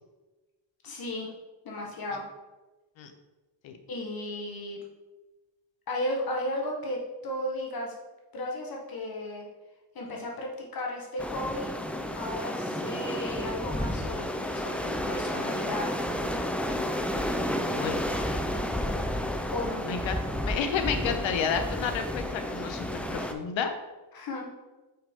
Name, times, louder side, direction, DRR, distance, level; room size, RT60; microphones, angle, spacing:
voice 1, 0.8-1.3 1.6-2.2 3.9-4.8 5.9-7.9 8.3-9.5 9.9-11.7 12.1-15.9 19.5-19.8 24.1-24.4, left 1 dB, 50° left, -1 dB, 1.3 m, -34 dB
sound 1, 11.2-23.3, left 1 dB, 5° left, 0.3 m, -31 dB
voice 2, 17.7-18.0 19.8-23.7, left 6 dB, 90° left, 7 dB, 0.8 m, -31 dB
5.6 x 5.4 x 3.5 m, 1.2 s
cardioid pair, 125°, 44 cm